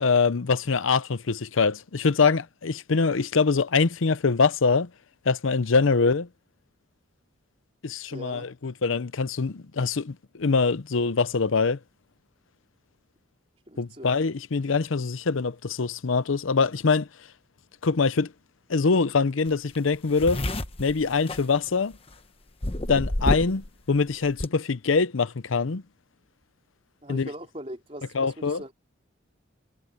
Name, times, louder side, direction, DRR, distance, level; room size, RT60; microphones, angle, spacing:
voice 1, 0.0-4.9 5.3-6.3 7.8-11.8 13.8-17.1 17.8-18.3 18.7-20.4 20.8-21.9 22.9-25.8 27.1-27.3 28.1-28.6, left 4 dB, 85° left, 0.7 m, -24 dB
voice 2, 8.1-8.5 13.7-14.1 27.0-28.7, equal, 30° right, 3.7 m, -40 dB
sound 1, 19.5-19.6 19.8-22.1 22.6-23.7 23.9-24.5, left 1 dB, 30° left, 1.1 m, -29 dB
head